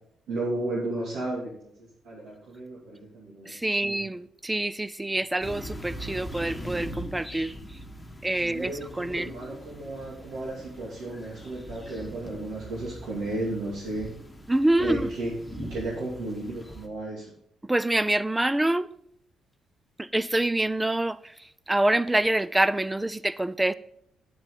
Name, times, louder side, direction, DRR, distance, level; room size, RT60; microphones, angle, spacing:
voice 1, 0.3-4.1 8.4-14.1 14.8-15.3 15.6-17.3, right 2 dB, 85° right, 2.6 m, -34 dB
voice 2, 3.5-7.5 8.2-8.7 9.0-9.3 14.5-15.0 17.6-18.9 20.0-21.2 21.7-23.7, right 1 dB, 10° right, 0.4 m, -26 dB
sound 1, 5.4-16.9, equal, 10° left, 1.6 m, -41 dB
9.1 x 8.0 x 3.9 m
cardioid pair, 90°, 0 cm